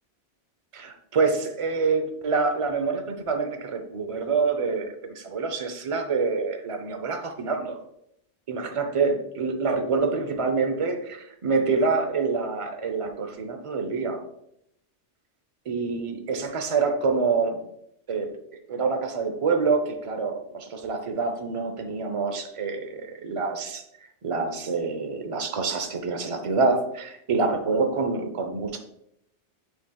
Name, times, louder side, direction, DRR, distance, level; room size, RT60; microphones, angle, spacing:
voice 1, 0.7-7.8 8.5-14.2 15.7-17.6 18.1-18.3 18.7-23.8 24.2-28.8, right 4 dB, 35° right, 6 dB, 0.6 m, -26 dB
8.8 x 4.6 x 2.3 m, 0.75 s
omnidirectional pair, 1.2 m